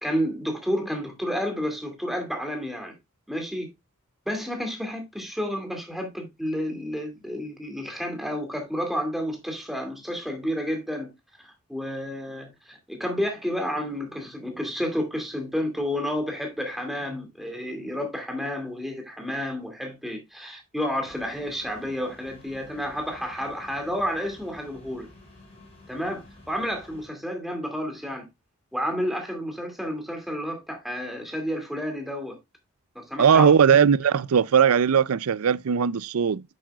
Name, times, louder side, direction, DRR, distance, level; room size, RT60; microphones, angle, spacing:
voice 1, 0.0-3.0 3.3-3.7 4.3-11.1 11.4-25.1 25.9-28.2 28.7-32.4 32.9-33.8, equal, ahead, 2.3 m, -30 dB
sound 1, 21.0-27.1, left 2 dB, 30° left, 4.0 m, -51 dB
voice 2, 33.2-36.4, right 7 dB, 80° right, 0.5 m, -19 dB
9.3 x 7.7 x 2.3 m
head